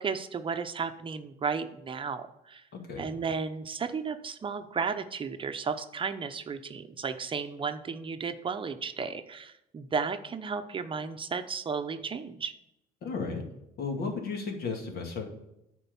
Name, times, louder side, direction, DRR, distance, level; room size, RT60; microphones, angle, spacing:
voice 1, 0.0-2.6 3.0-12.5, right 5 dB, 30° right, 8 dB, 0.7 m, -34 dB
voice 2, 13.0-13.4 13.8-15.3, left 4 dB, 65° left, 3 dB, 2.2 m, -34 dB
9.9 x 4.6 x 7.1 m, 0.84 s
cardioid pair, 110°, 17 cm